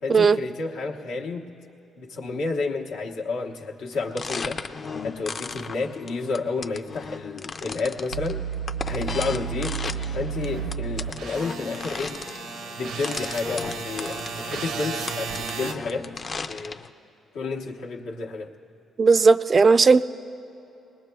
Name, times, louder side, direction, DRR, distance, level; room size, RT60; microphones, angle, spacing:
voice 1, 0.0-1.5 2.0-4.7 5.0-8.4 8.8-9.8 10.1-12.2 12.8-16.2 16.5-16.8 17.3-18.5, left 4 dB, 90° left, -1 dB, 1.0 m, -30 dB
sound 1, 3.9-16.9, left 4 dB, 40° left, 0.5 m, -36 dB
sound 2, 8.1-15.7, right 6 dB, 85° right, 0.6 m, -33 dB
voice 2, 19.0-20.0, right 4 dB, 40° right, 14 dB, 0.3 m, -16 dB
20.5 x 20.0 x 2.3 m, 3.0 s
cardioid pair, 90°, 0 cm